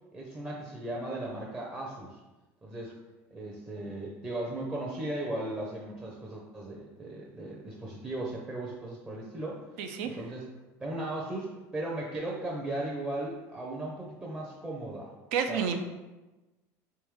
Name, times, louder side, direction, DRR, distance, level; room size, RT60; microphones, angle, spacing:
voice 1, 0.1-2.2 2.6-2.9 3.3-9.6 10.0-10.4 10.8-15.1 15.5-15.6, right 1 dB, 15° right, -3 dB, 0.6 m, -37 dB
voice 2, 9.8-10.2 15.3-15.8, right 6 dB, 85° right, 7 dB, 0.4 m, -30 dB
3.4 x 3.0 x 3.1 m, 1.1 s
supercardioid pair, 115°, 8 cm